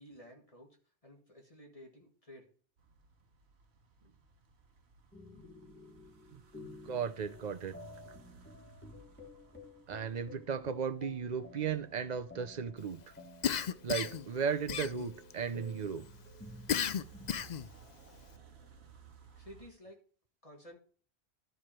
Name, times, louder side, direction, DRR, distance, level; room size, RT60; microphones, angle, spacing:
voice 1, 0.0-2.5 19.3-20.0 20.4-20.8, equal, 35° left, 1.6 m, -54 dB
sound 1, 2.8-19.7, right 4 dB, 80° right, 1.2 m, -60 dB
sound 2, 5.1-17.4, left 1 dB, 10° left, 1.6 m, -53 dB
voice 2, 6.6-7.7 9.9-13.0 13.8-16.0, right 6 dB, 50° right, 0.7 m, -35 dB
Cough, 13.4-14.3 14.7-15.3 16.7-17.7, left 8 dB, 55° left, 0.5 m, -33 dB
12.5 x 4.8 x 4.4 m
omnidirectional pair, 1.1 m